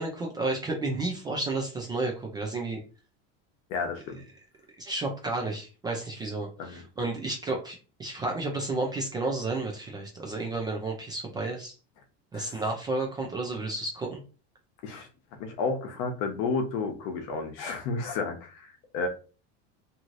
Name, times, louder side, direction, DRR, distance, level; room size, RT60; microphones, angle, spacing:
voice 1, 0.0-2.8 4.8-11.7 12.3-14.2, right 2 dB, 15° right, 0 dB, 0.3 m, -32 dB
voice 2, 3.7-4.2 6.6-6.8 12.3-12.6 14.8-19.1, left 4 dB, 60° left, 5 dB, 0.9 m, -32 dB
3.0 x 2.7 x 2.5 m, 0.35 s
cardioid pair, 165°, 31 cm